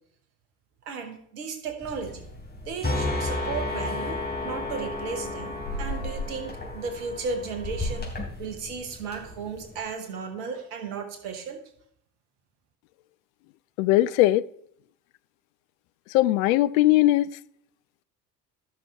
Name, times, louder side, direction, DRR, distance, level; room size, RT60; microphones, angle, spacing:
voice 1, 0.8-2.2 2.6-11.6, right 5 dB, 65° right, 1.5 m, -35 dB
sound 1, 1.8-9.8, left 2 dB, 20° left, 3.1 m, -33 dB
voice 2, 13.8-14.4 16.1-17.3, left 16 dB, 60° left, 0.5 m, -19 dB
15.5 x 6.0 x 3.3 m
figure-of-eight pair, 55°, 48 cm